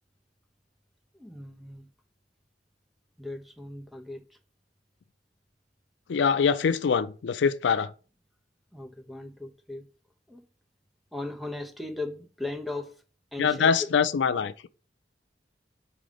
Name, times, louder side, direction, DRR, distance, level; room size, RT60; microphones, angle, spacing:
voice 1, 1.2-1.9 3.2-4.2 8.7-9.8 10.3-10.4 11.1-12.9 13.3-13.7, left 2 dB, ahead, 0.7 m, -37 dB
voice 2, 6.1-7.9 13.4-14.7, left 6 dB, 90° left, 0.4 m, -24 dB
5.0 x 3.9 x 5.1 m
head